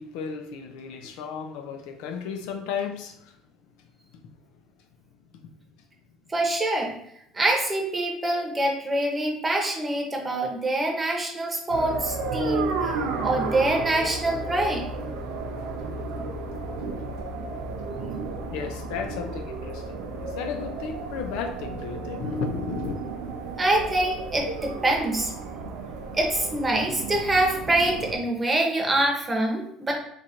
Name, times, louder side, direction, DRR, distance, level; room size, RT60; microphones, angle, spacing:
voice 1, 0.0-3.4 4.1-4.3 5.3-5.5 18.5-23.0, left 5 dB, 75° left, 6 dB, 0.5 m, -34 dB
voice 2, 6.3-6.9 7.3-13.0 13.2-14.8 23.6-25.3 26.1-29.9, right 1 dB, 20° right, 0 dB, 1.0 m, -25 dB
sound 1, 11.7-28.2, right 3 dB, 80° right, 0.5 m, -33 dB
3.1 x 2.5 x 4.2 m, 0.73 s
supercardioid pair, 90°, 0 cm